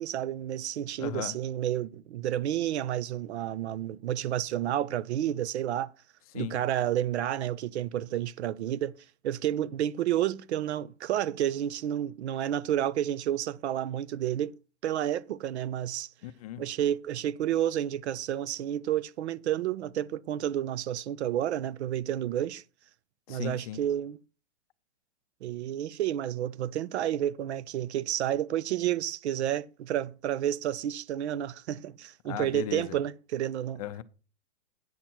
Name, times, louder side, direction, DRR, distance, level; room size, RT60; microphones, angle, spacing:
voice 1, 0.0-5.9 6.3-8.9 9.2-14.5 14.8-16.1 16.6-22.6 23.3-24.2 25.4-33.8, right 11 dB, 70° right, 0.6 m, -30 dB
voice 2, 1.0-1.4 6.3-6.6 16.2-16.6 23.3-23.8 32.2-33.0 33.8-34.0, left 12 dB, 35° left, 0.5 m, -36 dB
9.3 x 7.4 x 4.4 m
hypercardioid pair, 155°, 35 cm